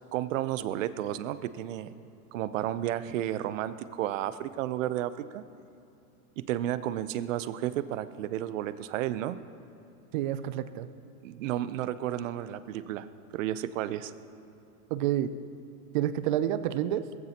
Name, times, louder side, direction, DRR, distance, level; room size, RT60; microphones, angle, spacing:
voice 1, 0.1-1.9 2.3-5.4 6.4-9.4 11.2-13.1 13.3-14.1, right 12 dB, 60° right, 14 dB, 0.7 m, -32 dB
voice 2, 10.1-10.9 14.9-15.3 15.9-17.1, right 11 dB, 35° right, 14 dB, 0.4 m, -29 dB
20.5 x 15.0 x 2.9 m, 2.8 s
supercardioid pair, 140°, 44 cm